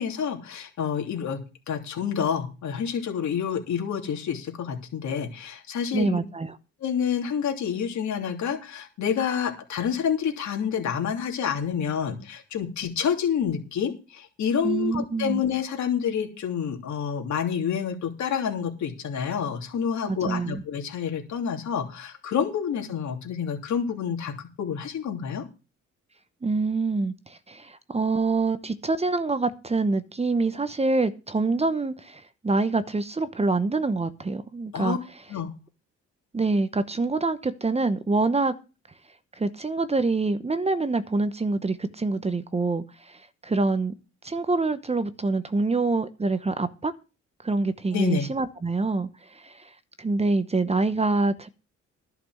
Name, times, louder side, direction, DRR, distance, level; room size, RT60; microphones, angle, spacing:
voice 1, 0.0-6.2 6.8-25.4 34.7-35.0 35.3-35.5 47.9-48.3, left 7 dB, 70° left, 3.1 m, -28 dB
voice 2, 5.9-6.5 14.6-15.4 20.1-20.6 26.4-35.0 36.3-38.5 39.4-43.9 44.2-46.9 47.4-49.7 50.0-51.5, right 3 dB, 20° right, 1.0 m, -26 dB
11.5 x 6.0 x 7.8 m
cardioid pair, 90°, 30 cm